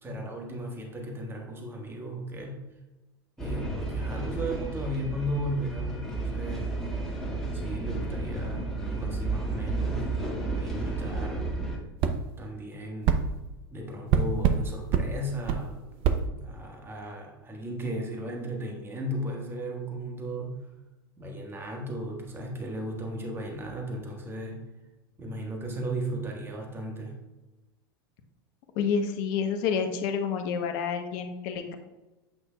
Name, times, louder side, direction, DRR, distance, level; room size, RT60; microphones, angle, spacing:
voice 1, 0.0-2.6 3.4-6.7 7.5-10.1 10.5-11.6 12.4-13.4 13.7-20.6 21.2-24.6 25.2-27.2, equal, 20° right, 0 dB, 1.4 m, -36 dB
sound 1, 3.4-11.8, right 3 dB, 5° left, 1.8 m, -32 dB
sound 2, 12.0-12.2 13.0-13.2 14.1-14.6 14.9-15.1 15.5-15.6 16.0-16.2, right 7 dB, 50° right, 0.6 m, -23 dB
voice 2, 28.8-31.8, left 6 dB, 60° left, 7 dB, 0.9 m, -29 dB
8.3 x 5.8 x 2.3 m, 1.1 s
hypercardioid pair, 90°, 12 cm